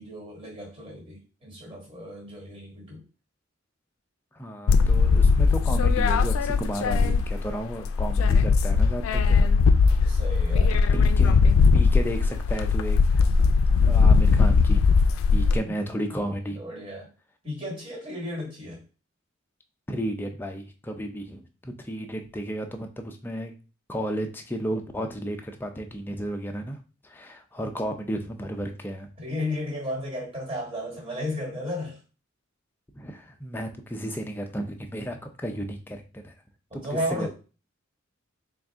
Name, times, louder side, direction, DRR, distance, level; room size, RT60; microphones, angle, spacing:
voice 1, 0.0-3.0 10.0-10.8 15.5-15.7 16.1-16.2 16.5-17.1 17.4-18.8 29.2-32.0 36.7-37.3, left 1 dB, 25° right, -3 dB, 1.6 m, -34 dB
voice 2, 4.3-9.5 10.9-13.3 13.8-14.8 15.3-16.6 19.9-23.5 23.9-26.8 27.0-29.1 32.9-36.3 36.7-37.3, equal, 10° left, 4 dB, 0.4 m, -33 dB
sound 1, 4.7-7.5 7.8-15.6, left 4 dB, 90° left, 0.3 m, -19 dB
3.9 x 2.4 x 3.5 m, 0.33 s
head